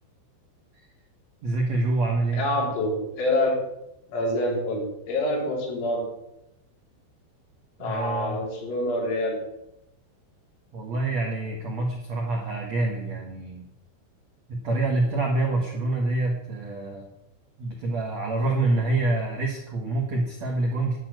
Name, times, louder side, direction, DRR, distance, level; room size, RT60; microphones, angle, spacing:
voice 1, 1.4-2.4 7.8-8.4 10.7-13.7 14.5-17.1 17.6-21.0, right 2 dB, 70° right, 0 dB, 1.6 m, -26 dB
voice 2, 2.3-3.6 4.1-6.1 7.8-9.4, left 1 dB, 75° left, -2 dB, 6.1 m, -26 dB
11.0 x 6.4 x 9.1 m, 0.86 s
omnidirectional pair, 5.5 m